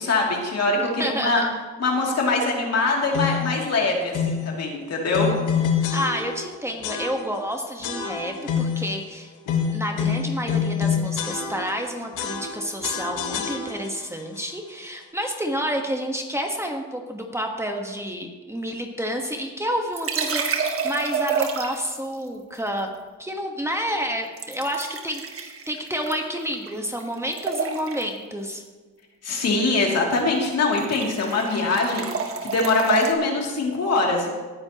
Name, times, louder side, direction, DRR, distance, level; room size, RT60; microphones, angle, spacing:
voice 1, 0.0-1.4 1.8-5.3 29.2-34.3, left 3 dB, 55° left, -1 dB, 2.8 m, -23 dB
voice 2, 0.8-1.5 5.9-9.3 9.7-22.9 23.2-28.6, equal, 10° right, 2 dB, 1.3 m, -29 dB
sound 1, 3.1-3.6 4.1-4.5 5.1-6.5 6.8-7.5 7.8-8.9 9.5-11.9 12.2-14.0, left 7 dB, 80° left, 1.4 m, -26 dB
sound 2, 19.9-22.0 24.4-26.7 27.0-28.2 29.9-30.2 30.4-33.1, right 5 dB, 45° right, 1.5 m, -29 dB
18.0 x 9.7 x 3.0 m, 1.3 s
cardioid pair, 90°, 30 cm